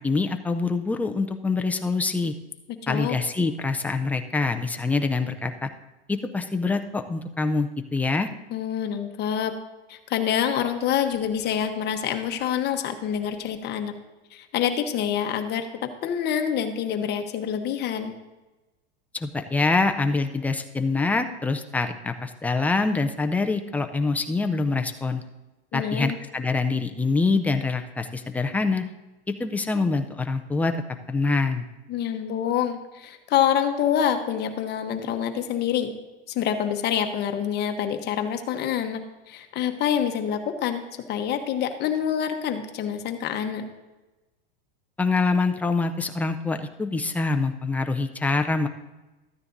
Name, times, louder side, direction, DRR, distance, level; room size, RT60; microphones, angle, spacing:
voice 1, 0.0-2.3 2.9-5.7 6.1-8.3 19.1-25.2 25.7-28.8 29.4-30.7 31.1-31.6 45.0-48.7, left 3 dB, 5° left, 6 dB, 0.4 m, -25 dB
voice 2, 2.8-3.2 8.5-9.5 9.9-13.9 14.3-18.1 25.7-26.2 31.9-35.9 36.3-39.0 39.3-43.7, left 9 dB, 35° left, 6 dB, 1.0 m, -26 dB
13.5 x 9.7 x 2.6 m, 1.1 s
supercardioid pair, 130°, 29 cm